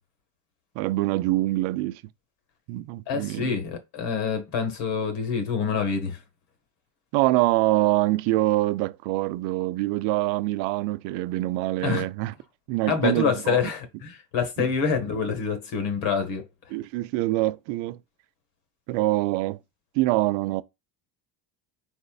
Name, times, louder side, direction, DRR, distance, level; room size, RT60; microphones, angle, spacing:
voice 1, 0.8-2.0 2.7-3.5 7.1-12.3 12.7-13.7 16.7-18.0 18.9-19.6 19.9-20.6, right 18 dB, 65° right, 0.6 m, -25 dB
voice 2, 3.1-6.2 11.8-12.1 12.9-16.4, left 6 dB, 60° left, 1.5 m, -26 dB
4.3 x 4.0 x 2.3 m
cardioid pair, 130°, 49 cm